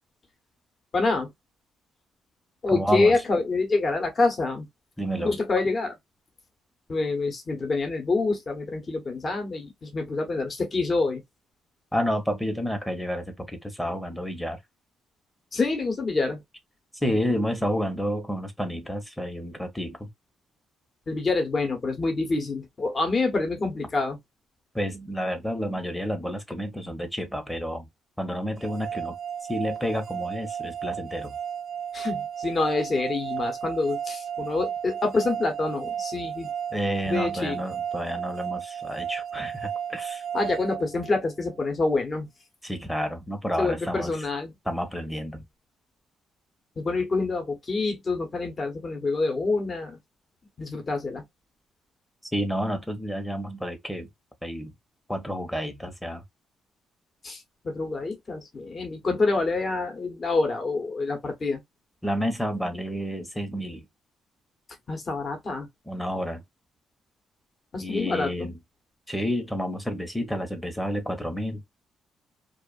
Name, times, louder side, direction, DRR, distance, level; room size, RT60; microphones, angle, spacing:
voice 1, 0.9-1.3 2.6-4.7 5.2-5.9 6.9-11.2 15.5-16.4 21.1-24.2 31.9-36.5 37.1-37.6 40.3-42.3 43.6-44.5 46.8-50.0 50.6-51.2 57.2-61.6 64.9-65.7 67.7-68.3, left 3 dB, 35° left, 1.1 m, -26 dB
voice 2, 2.7-3.2 5.0-5.4 11.9-14.6 16.9-20.1 24.7-27.9 28.2-29.2 29.5-31.4 36.7-40.2 42.6-44.1 44.6-45.4 52.3-54.1 54.4-54.7 55.1-56.2 62.0-63.9 65.9-66.4 67.8-68.6 69.1-71.6, equal, 5° left, 0.9 m, -30 dB
sound 1, 28.6-41.5, right 8 dB, 55° right, 0.4 m, -34 dB
2.5 x 2.4 x 2.3 m
cardioid pair, 90°, 0 cm